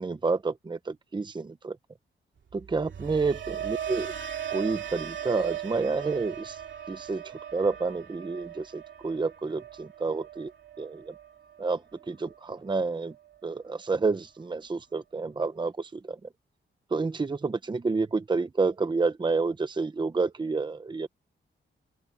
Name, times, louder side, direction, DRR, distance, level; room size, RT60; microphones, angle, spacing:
voice 1, 0.0-1.8 2.5-4.1 4.5-6.6 6.9-10.5 10.8-11.1 11.6-13.1 13.4-16.2 16.9-21.1, right 4 dB, 25° right, 0.8 m, -29 dB
sound 1, 2.5-12.6 12.9-13.4, right 9 dB, 70° right, 2.5 m, -38 dB
open air
wide cardioid pair, 150°, 20 cm